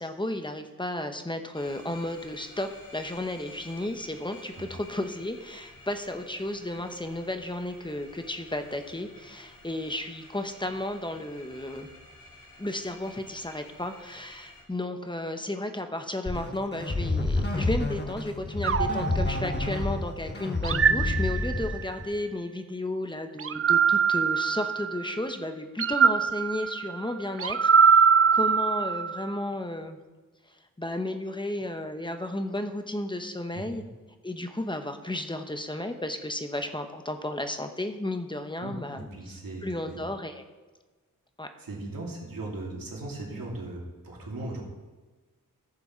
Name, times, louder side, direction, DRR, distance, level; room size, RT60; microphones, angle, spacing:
voice 1, 0.0-11.9 12.6-28.1 28.3-30.0 30.5-33.8 34.2-39.1 39.6-40.4 41.4-41.5, left 1 dB, 15° left, 6 dB, 0.9 m, -33 dB
sound 1, 1.5-14.6, left 2 dB, 80° left, 1.9 m, -51 dB
sound 2, 16.3-22.1, left 2 dB, 30° left, 1.2 m, -29 dB
sound 3, 18.6-20.0 20.6-21.9 23.4-25.1 25.8-29.3, right 6 dB, 40° right, 0.5 m, -23 dB
voice 2, 38.6-40.0 41.6-44.6, right 2 dB, 75° right, -3 dB, 2.8 m, -38 dB
14.5 x 6.9 x 4.4 m, 1.3 s
wide cardioid pair, 90°, 34 cm